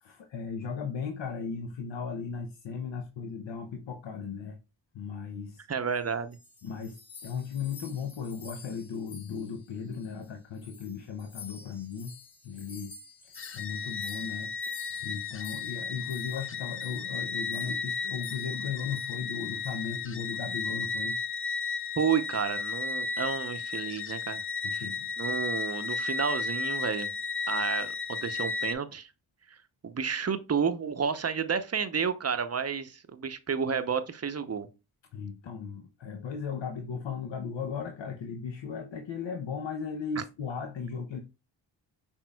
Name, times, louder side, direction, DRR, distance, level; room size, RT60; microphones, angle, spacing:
voice 1, 0.0-4.6 4.9-5.6 6.6-12.1 12.4-13.0 13.5-21.2 24.6-25.1 35.1-41.2, left 6 dB, 65° left, 0.8 m, -37 dB
voice 2, 5.7-6.4 22.0-24.4 24.7-24.9 25.2-27.1 27.5-29.1 29.5-29.6 29.8-34.7, right 6 dB, 30° right, 0.7 m, -31 dB
sound 1, 6.0-10.3 10.6-16.5 16.8-17.1 17.5-17.8 18.2-18.7 18.9-19.1 19.6-19.9, left 4 dB, 50° left, 1.5 m, -50 dB
sound 2, 13.4-28.7, left 4 dB, 30° left, 0.5 m, -34 dB
6.0 x 3.6 x 2.3 m
cardioid pair, 45°, 48 cm